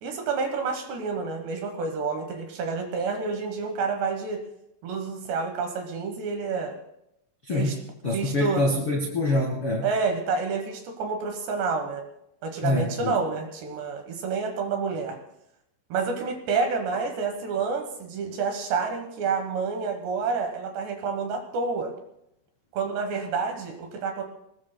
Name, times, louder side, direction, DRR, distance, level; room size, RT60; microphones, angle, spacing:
voice 1, 0.0-4.4 4.8-6.7 7.5-7.8 8.1-8.6 9.8-12.0 12.4-15.2 15.9-21.9 22.7-24.2, right 5 dB, 70° right, 4 dB, 3.0 m, -29 dB
voice 2, 7.4-9.9 12.6-13.2, left 2 dB, 55° left, -2 dB, 1.5 m, -26 dB
25.0 x 19.0 x 2.2 m, 0.81 s
omnidirectional pair, 5.9 m